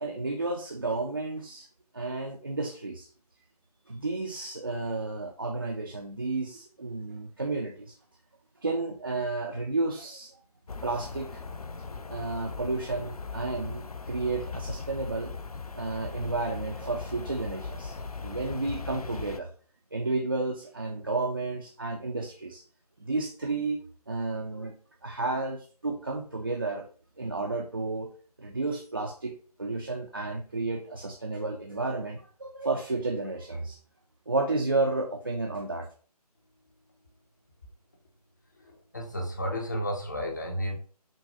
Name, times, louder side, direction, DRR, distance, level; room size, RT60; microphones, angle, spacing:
voice 1, 0.0-1.7 1.9-3.1 3.9-8.0 8.6-10.4 10.8-11.6 12.1-15.3 15.7-19.5 19.9-22.6 23.0-23.8 24.1-24.7 25.0-26.9 27.2-28.1 28.4-29.3 29.6-33.8 34.3-35.9, right 3 dB, 35° right, 2 dB, 0.4 m, -32 dB
sound 1, 10.7-19.4, left 4 dB, 65° left, 0.6 m, -39 dB
voice 2, 38.9-40.8, equal, 30° left, 1 dB, 0.6 m, -32 dB
6.1 x 2.2 x 3.8 m, 0.42 s
figure-of-eight pair, 160°, 20 cm